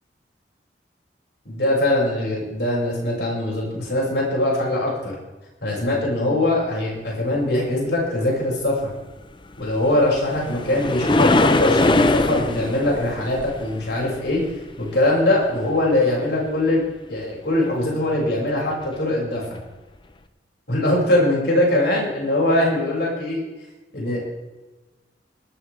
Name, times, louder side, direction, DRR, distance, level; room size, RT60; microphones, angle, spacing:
voice 1, 1.4-5.1 5.6-8.9 9.6-14.4 14.8-16.8 17.1-19.6 20.7-23.4 23.9-24.3, left 1 dB, 75° left, -3 dB, 6.1 m, -22 dB
sound 1, 9.7-14.9 18.8-18.9 19.6-19.7, left 2 dB, 25° left, 0.7 m, -21 dB
19.0 x 13.0 x 3.4 m, 1.2 s
head